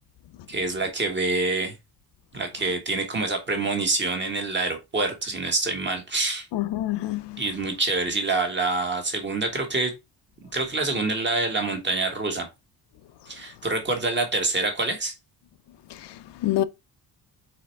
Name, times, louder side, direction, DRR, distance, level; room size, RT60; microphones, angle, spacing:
voice 1, 0.5-1.7 2.3-6.4 7.4-9.9 10.5-12.5 13.3-15.1, right 3 dB, 25° right, 1.5 m, -26 dB
voice 2, 6.5-7.4 15.9-16.6, left 14 dB, 75° left, 0.6 m, -27 dB
4.8 x 4.3 x 4.5 m
wide cardioid pair, 175°, 42 cm